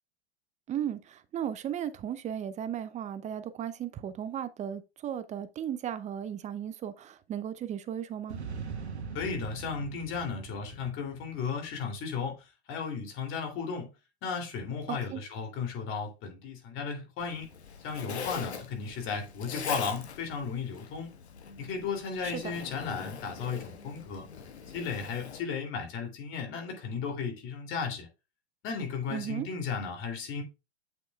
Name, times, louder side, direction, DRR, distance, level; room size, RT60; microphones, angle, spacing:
voice 1, 0.7-8.4 14.9-15.2 22.2-22.4 29.1-29.5, right 9 dB, 20° right, 0.7 m, -35 dB
sound 1, 8.3-11.8, right 6 dB, 90° right, 1.4 m, -41 dB
voice 2, 9.1-13.9 14.2-17.5 17.8-21.1 21.6-24.2 24.7-28.1 28.6-30.4, left 5 dB, 40° left, 3.0 m, -35 dB
Zipper (clothing), 17.2-25.4, left 6 dB, 85° left, 1.5 m, -42 dB
8.0 x 6.5 x 2.4 m
hypercardioid pair, 105°, 32 cm